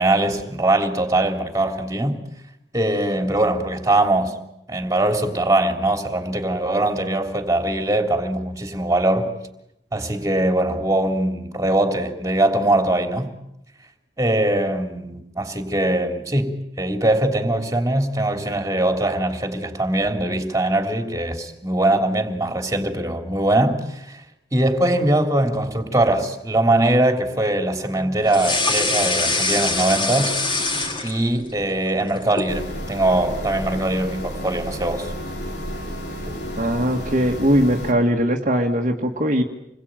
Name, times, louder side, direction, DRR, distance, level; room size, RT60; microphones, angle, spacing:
voice 1, 0.0-2.2 2.7-4.4 4.7-9.3 9.9-13.3 14.2-24.2 24.5-30.4 31.0-35.1, right 1 dB, 20° right, 3.2 m, -21 dB
sound 1, 28.3-31.5 31.9-32.6, left 3 dB, 30° left, 4.6 m, -23 dB
sound 2, 32.5-37.9, equal, 75° left, 4.3 m, -31 dB
voice 2, 36.6-39.4, equal, 45° right, 1.9 m, -20 dB
28.0 x 21.5 x 9.1 m
head